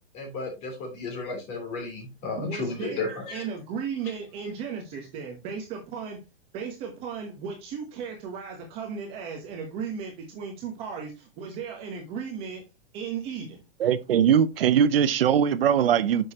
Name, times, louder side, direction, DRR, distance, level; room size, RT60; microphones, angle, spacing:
voice 1, 0.1-3.4, left 3 dB, 25° left, 3.5 m, -33 dB
voice 2, 2.4-6.2 6.5-12.6 12.9-13.6, right 6 dB, 20° right, 1.1 m, -35 dB
voice 3, 13.8-16.3, right 8 dB, 75° right, 0.8 m, -21 dB
9.3 x 6.5 x 2.9 m
hypercardioid pair, 170°, 29 cm